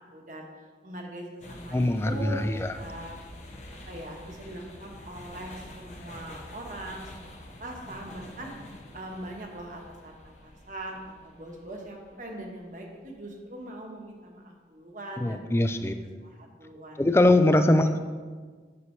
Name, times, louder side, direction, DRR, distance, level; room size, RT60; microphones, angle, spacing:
voice 1, 0.1-0.5 0.8-3.2 3.9-15.5 15.8-15.9 16.2-17.0 17.8-18.0, right 1 dB, 45° right, 1 dB, 1.2 m, -41 dB
sound 1, 1.4-13.5, left 1 dB, 40° left, 0.8 m, -47 dB
voice 2, 1.7-2.7 15.2-15.9 17.0-18.0, left 1 dB, 15° left, 8 dB, 0.3 m, -22 dB
9.6 x 6.7 x 3.2 m, 1.5 s
head